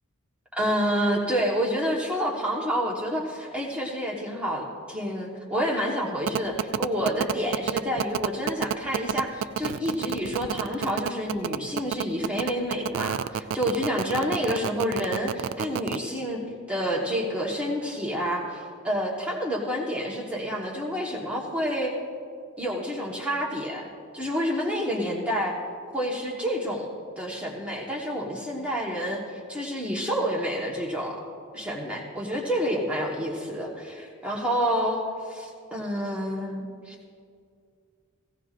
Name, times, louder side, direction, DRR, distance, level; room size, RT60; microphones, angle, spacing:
voice 1, 0.5-16.4 16.7-21.9 22.6-23.9 24.1-25.5 25.9-26.9 27.2-29.2 29.5-31.2 31.5-36.9, equal, 5° right, -3 dB, 1.2 m, -28 dB
sound 1, 6.3-16.0, right 8 dB, 55° right, 0.3 m, -28 dB
17.0 x 16.5 x 2.5 m, 2.3 s
head